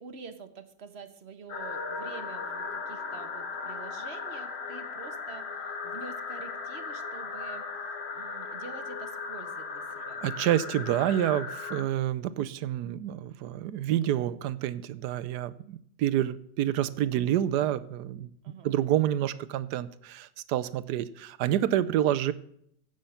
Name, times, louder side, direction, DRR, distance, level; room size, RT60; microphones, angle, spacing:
voice 1, 0.0-7.7 8.1-10.2 18.4-18.8, right 5 dB, 45° right, 10 dB, 1.0 m, -47 dB
sound 1, 1.5-11.8, left 4 dB, 45° left, 1.1 m, -37 dB
voice 2, 10.2-18.3 18.6-22.3, right 12 dB, 70° right, 14 dB, 1.1 m, -28 dB
16.0 x 6.5 x 5.7 m, 0.70 s
omnidirectional pair, 1.9 m